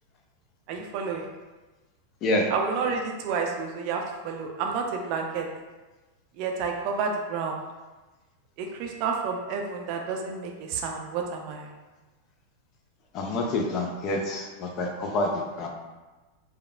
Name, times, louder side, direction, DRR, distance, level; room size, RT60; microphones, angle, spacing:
voice 1, 0.7-1.3 2.5-5.5 6.4-7.6 8.6-11.7, right 5 dB, 45° right, 2 dB, 0.4 m, -30 dB
voice 2, 13.1-15.3 15.6-15.7, left 2 dB, 35° left, 2 dB, 0.5 m, -27 dB
4.8 x 2.3 x 2.2 m, 1.2 s
figure-of-eight pair, 90°, 0 cm